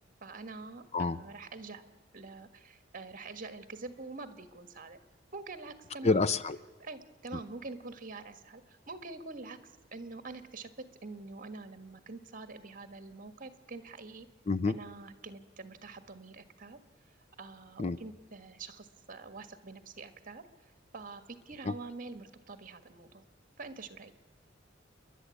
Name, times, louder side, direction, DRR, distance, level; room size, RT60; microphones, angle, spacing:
voice 1, 0.2-1.8 2.1-5.0 5.3-6.3 6.8-10.7 11.0-14.3 14.7-16.8 17.4-20.4 20.9-23.2 23.6-24.1, right 3 dB, 45° right, 10 dB, 1.6 m, -45 dB
voice 2, 6.0-6.6 14.5-14.7 17.8-18.0, left 3 dB, 35° left, 16 dB, 0.6 m, -27 dB
29.5 x 11.5 x 8.4 m, 1.4 s
head